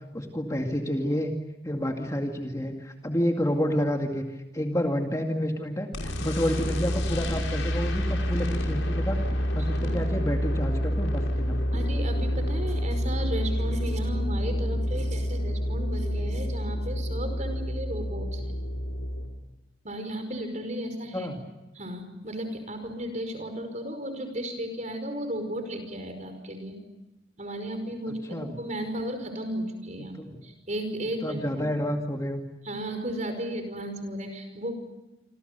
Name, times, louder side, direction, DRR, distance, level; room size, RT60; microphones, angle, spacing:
voice 1, 0.1-1.3 1.6-11.8 21.1-21.4 28.1-28.6 30.0-30.4 31.2-32.4, equal, 15° left, 3 dB, 2.2 m, -29 dB
sound 1, 5.9-19.3, equal, 80° left, 5.7 m, -28 dB
voice 2, 11.7-18.6 19.8-21.3 21.8-26.8 27.4-30.1 30.4-31.7 32.6-34.7, right 1 dB, 35° right, 7 dB, 5.4 m, -34 dB
28.0 x 27.0 x 6.9 m, 1.0 s
head